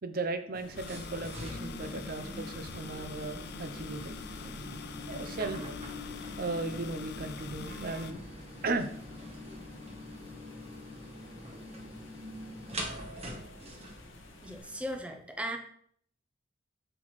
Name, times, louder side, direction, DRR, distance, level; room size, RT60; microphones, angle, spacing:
voice 1, 0.0-4.2 5.1-5.7 6.4-8.2 8.6-8.9, right 3 dB, 50° right, 9 dB, 0.7 m, -36 dB
sound 1, 0.5-15.0, left 2 dB, 85° left, 1.0 m, -50 dB
sound 2, 0.7-14.6, equal, 35° right, 1.2 m, -44 dB
sound 3, 0.8-8.1, left 7 dB, 60° left, 0.4 m, -46 dB
voice 2, 14.4-15.6, equal, 5° right, 4 dB, 0.7 m, -37 dB
7.7 x 6.0 x 3.2 m, 0.63 s
head